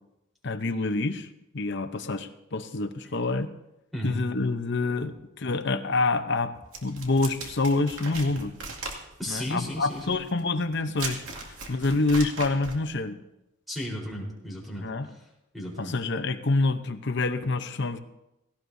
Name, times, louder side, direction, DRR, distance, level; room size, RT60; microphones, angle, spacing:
voice 1, 0.4-1.3 1.5-3.5 4.0-6.5 6.8-8.5 9.3-11.2 11.7-13.2 14.8-15.1 15.8-18.0, left 3 dB, 55° left, 9 dB, 0.8 m, -27 dB
sound 1, 6.7-12.8, right 3 dB, 85° right, 2.3 m, -38 dB
voice 2, 9.2-10.2 13.0-13.2 13.7-15.2 15.5-16.0, equal, ahead, -3 dB, 4.1 m, -35 dB
17.5 x 17.0 x 2.7 m, 0.91 s
head